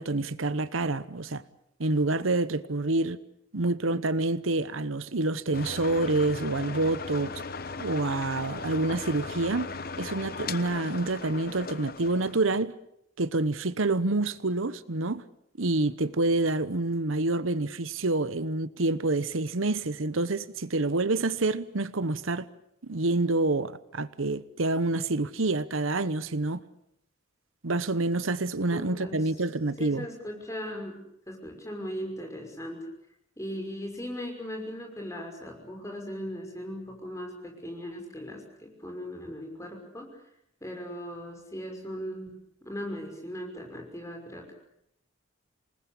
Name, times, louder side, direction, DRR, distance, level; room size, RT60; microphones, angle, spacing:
voice 1, 0.0-1.4 1.8-3.2 3.5-7.3 7.8-9.7 10.0-12.7 13.2-15.2 15.6-22.5 22.8-26.6 27.6-30.0, right 2 dB, 85° right, 1.0 m, -27 dB
sound 1, 5.5-12.4, left 4 dB, 45° left, 1.1 m, -38 dB
voice 2, 28.7-29.3 29.8-32.8 33.4-40.2 40.6-42.3 42.6-44.5, equal, 15° left, 5.9 m, -38 dB
27.5 x 19.5 x 8.5 m
head